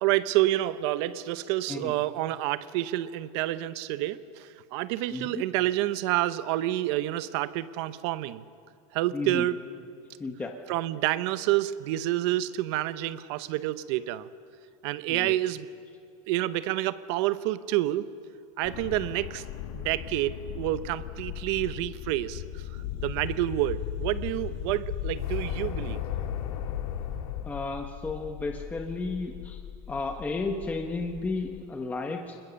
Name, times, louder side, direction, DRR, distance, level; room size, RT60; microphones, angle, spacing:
voice 1, 0.0-8.4 8.9-9.6 10.7-14.3 14.8-15.7 16.3-18.1 18.6-19.4 19.7-22.4 23.0-26.0, right 15 dB, 50° right, 15 dB, 0.8 m, -28 dB
voice 2, 5.1-5.4 9.1-9.5 10.2-10.5 15.1-15.3 27.4-29.6 29.9-32.4, left 3 dB, 10° left, 3 dB, 0.9 m, -33 dB
sound 1, 18.6-31.7, left 11 dB, 60° left, 1.1 m, -40 dB
sound 2, 22.7-27.7, left 10 dB, 80° left, 2.0 m, -34 dB
26.0 x 21.0 x 7.0 m, 2.4 s
supercardioid pair, 170°, 18 cm